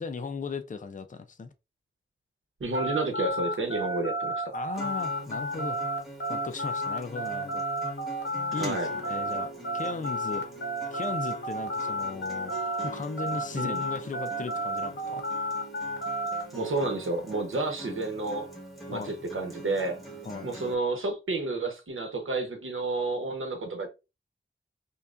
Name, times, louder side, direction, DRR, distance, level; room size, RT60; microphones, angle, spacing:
voice 1, 0.0-1.5 4.5-5.8 6.3-7.6 8.5-9.5 9.7-10.5 10.9-12.5 12.8-15.2 18.9-19.1 20.3-20.5, left 4 dB, 40° left, 0.5 m, -36 dB
voice 2, 2.6-4.5 8.6-8.9 13.5-13.8 16.5-18.5 18.9-20.0 20.4-23.9, right 2 dB, 85° right, 1.0 m, -30 dB
sound 1, 2.7-12.9 13.2-16.4, right 1 dB, 60° left, 0.9 m, -32 dB
Acoustic guitar, 4.7-20.7, right 1 dB, ahead, 1.6 m, -43 dB
5.3 x 2.3 x 2.5 m
wide cardioid pair, 75°, 20 cm